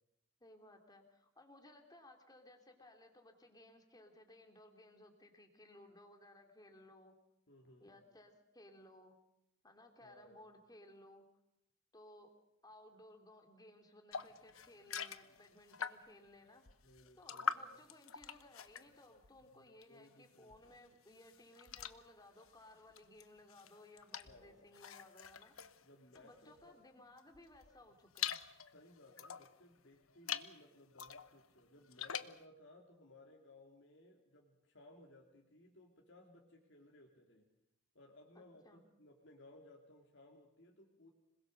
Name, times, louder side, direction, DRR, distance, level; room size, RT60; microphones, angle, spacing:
voice 1, 0.4-7.2 7.8-9.2 9.6-11.3 11.9-12.3 12.6-16.6 17.2-25.5 26.1-28.4 38.3-38.8, left 1 dB, 20° left, 4 dB, 3.2 m, -60 dB
voice 2, 7.5-8.0 10.0-10.4 16.8-17.6 19.9-20.8 24.2-24.7 25.8-26.8 28.6-37.5 37.9-41.1, left 1 dB, 60° left, 0 dB, 2.9 m, -61 dB
sound 1, 14.1-16.3 16.7-20.1 20.4-26.7 27.2-29.6 30.1-30.6 30.9-32.4, left 7 dB, 85° left, 1.1 m, -45 dB
27.0 x 21.0 x 6.6 m, 0.83 s
head